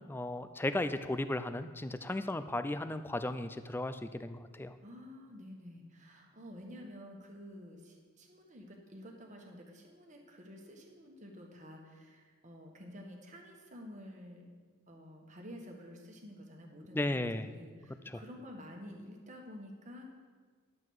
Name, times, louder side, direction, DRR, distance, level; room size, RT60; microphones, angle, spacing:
voice 1, 0.1-4.8 16.9-17.5 18.1-18.2, left 1 dB, 10° left, 11 dB, 0.3 m, -35 dB
voice 2, 4.8-14.5 14.9-20.1, equal, 35° right, 1 dB, 1.4 m, -50 dB
11.0 x 7.8 x 4.7 m, 1.5 s
head